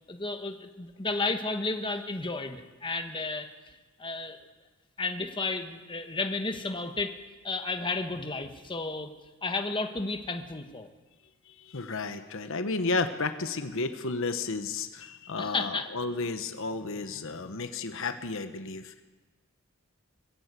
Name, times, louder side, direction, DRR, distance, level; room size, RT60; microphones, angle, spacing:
voice 1, 0.1-3.5 4.0-4.4 5.0-7.1 7.4-9.1 9.4-10.9 15.4-15.9, left 3 dB, 20° left, 6 dB, 1.3 m, -32 dB
voice 2, 11.6-19.0, left 3 dB, 60° left, 9 dB, 1.1 m, -32 dB
22.0 x 15.0 x 8.3 m, 1.2 s
head